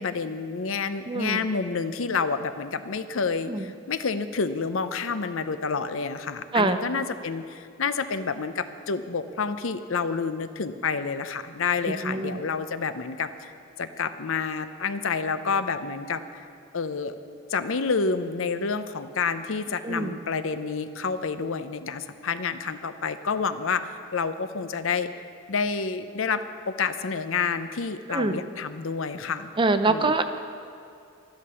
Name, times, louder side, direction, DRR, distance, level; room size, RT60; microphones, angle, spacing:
voice 1, 0.0-13.5 13.8-16.4 16.7-17.1 17.5-25.1 25.5-29.5 29.9-30.2, left 5 dB, 70° left, 11 dB, 0.7 m, -29 dB
voice 2, 1.1-1.4 3.5-3.7 6.5-6.8 12.0-12.4 19.8-20.1 28.1-28.4 29.6-30.2, right 3 dB, 25° right, 9 dB, 0.6 m, -24 dB
12.5 x 11.5 x 6.9 m, 2.5 s
head